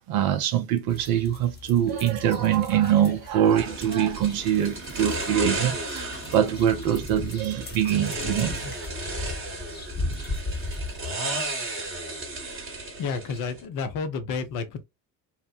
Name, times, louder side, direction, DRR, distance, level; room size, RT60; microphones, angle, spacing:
voice 1, 0.1-8.5, right 10 dB, 45° right, 0.6 m, -23 dB
sound 1, 0.9-11.1, left 2 dB, 20° left, 1.0 m, -37 dB
sound 2, 3.6-13.7, right 2 dB, 25° right, 1.1 m, -34 dB
voice 2, 13.0-14.8, left 5 dB, 40° left, 0.6 m, -30 dB
2.9 x 2.0 x 2.3 m
figure-of-eight pair, 55°, 50 cm